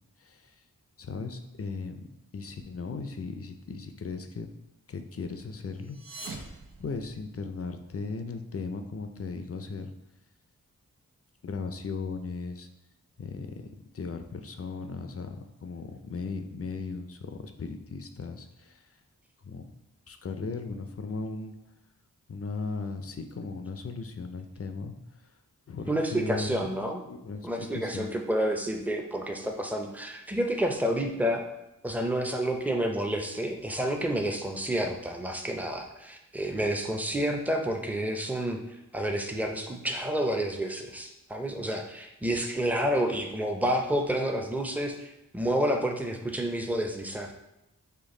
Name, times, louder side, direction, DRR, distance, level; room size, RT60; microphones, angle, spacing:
voice 1, 0.2-0.5 1.0-2.1 2.3-4.5 4.9-6.5 6.8-9.9 11.4-12.7 13.2-13.7 13.9-18.9 19.4-19.7 20.1-21.5 22.3-24.9 25.7-26.6 27.1-28.1, left 4 dB, 45° left, 6 dB, 0.5 m, -37 dB
sound 1, 5.8-7.7, right 2 dB, 75° right, 0.8 m, -44 dB
voice 2, 25.9-27.0 27.4-31.4 31.8-47.3, right 1 dB, 5° right, 3 dB, 0.6 m, -29 dB
5.2 x 2.3 x 3.8 m, 0.92 s
cardioid pair, 40°, 34 cm